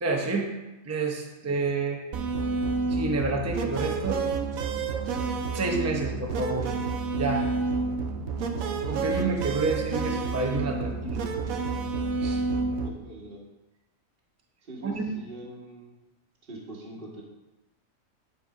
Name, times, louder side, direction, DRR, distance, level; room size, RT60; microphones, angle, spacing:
voice 1, 0.0-0.5 0.8-2.0 2.9-4.2 5.5-6.7 7.2-7.5 8.9-11.2 12.2-12.4 14.8-15.1, right 3 dB, 15° right, 2 dB, 0.7 m, -29 dB
sound 1, 2.1-12.9, right 4 dB, 85° right, 1.2 m, -29 dB
voice 2, 12.8-13.4 14.7-15.9 16.5-17.2, right 2 dB, 45° right, -2 dB, 1.8 m, -42 dB
9.9 x 4.4 x 4.9 m, 1.0 s
omnidirectional pair, 1.4 m